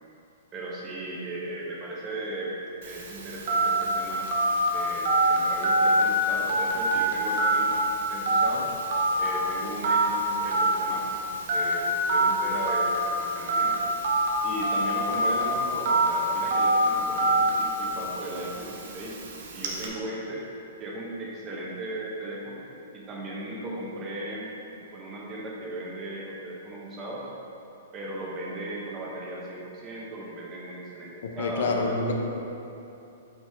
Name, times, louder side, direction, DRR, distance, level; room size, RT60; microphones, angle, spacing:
voice 1, 0.5-2.6 2.8-4.3 4.7-8.7 9.2-11.2 11.5-13.8 14.4-19.2 19.5-20.4 20.8-22.6 22.9-24.5 24.9-27.3 27.9-32.1, right 1 dB, 20° right, -4 dB, 0.8 m, -37 dB
Telephone, 2.8-19.9, right 1 dB, 50° right, 0.8 m, -26 dB
voice 2, 31.2-32.1, left 3 dB, 65° left, 2 dB, 0.7 m, -27 dB
5.5 x 5.4 x 3.4 m, 2.9 s
hypercardioid pair, 170°, 0 cm